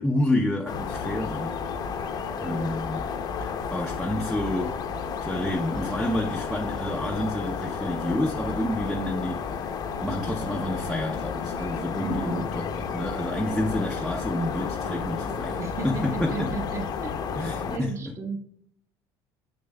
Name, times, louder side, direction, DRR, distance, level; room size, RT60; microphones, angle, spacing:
voice 1, 0.0-1.5 2.4-3.1 3.4-4.8 5.2-9.7 10.0-16.6 17.3-18.1, left 1 dB, ahead, 0.6 m, -29 dB
sound 1, 0.7-17.8, left 6 dB, 45° left, 0.7 m, -32 dB
voice 2, 2.2-2.8 12.0-12.5 15.6-17.1 17.7-18.4, right 3 dB, 30° right, 1.0 m, -35 dB
6.8 x 6.7 x 2.2 m
cardioid pair, 130°, 9 cm